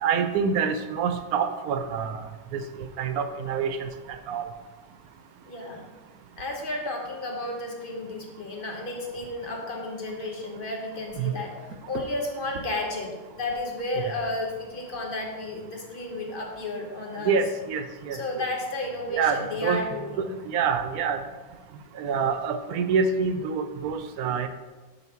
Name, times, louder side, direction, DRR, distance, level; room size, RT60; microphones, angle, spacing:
voice 1, 0.0-2.2 2.5-2.6 3.0-3.9 4.3-4.4 11.2-11.3 17.2-18.2 19.1-19.8 20.5-21.2 22.0-24.5, right 6 dB, 80° right, 9 dB, 1.1 m, -26 dB
voice 2, 5.5-5.9 6.4-17.4 18.1-20.4, left 2 dB, 40° left, 1 dB, 1.2 m, -32 dB
7.2 x 3.8 x 5.7 m, 1.3 s
omnidirectional pair, 1.6 m